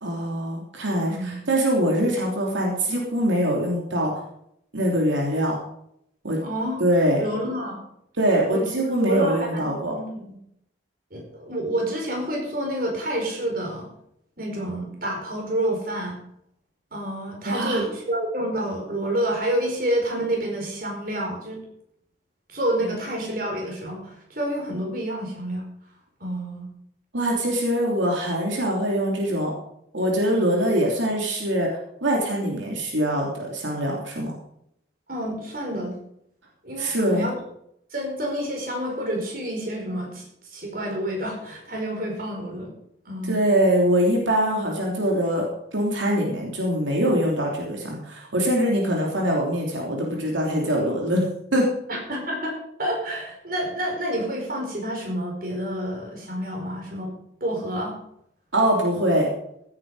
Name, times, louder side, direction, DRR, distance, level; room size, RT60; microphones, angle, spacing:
voice 1, 0.0-4.2 4.7-5.6 6.2-6.4 6.8-7.2 8.2-9.9 17.5-17.9 27.1-29.5 29.9-31.7 32.0-34.3 36.8-37.2 43.2-51.2 51.5-51.6 58.5-59.3, right 1 dB, 90° right, -1 dB, 3.2 m, -23 dB
voice 2, 0.9-1.4 6.4-6.8 7.2-7.8 8.5-8.7 9.0-10.4 11.1-13.9 14.4-16.2 16.9-21.6 22.5-25.6 26.2-26.7 35.1-35.9 36.6-37.4 37.9-40.3 40.5-42.7 43.0-43.4 51.9-57.1 57.4-57.9, right 1 dB, 50° right, 0 dB, 4.9 m, -28 dB
16.0 x 9.7 x 5.0 m, 0.73 s
head